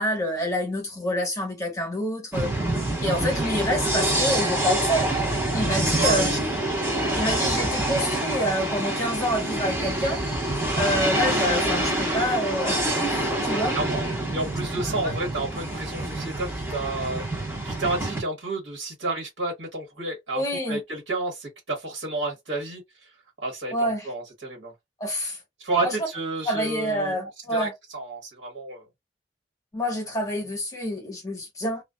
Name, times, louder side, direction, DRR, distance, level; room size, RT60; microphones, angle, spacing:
voice 1, 0.0-2.5 2.8-5.1 5.5-6.4 7.1-10.2 10.7-13.8 14.8-15.1 20.3-20.8 23.7-24.1 25.0-25.4 25.8-25.9 26.5-27.7 29.7-31.8, equal, 15° left, 1.2 m, -27 dB
sound 1, 2.3-18.2, right 1 dB, 15° right, 1.0 m, -26 dB
voice 2, 6.0-6.3 13.5-14.1 14.3-22.8 23.4-24.7 25.6-27.1 27.5-28.8, right 2 dB, 70° right, 1.3 m, -30 dB
2.4 x 2.3 x 2.2 m
head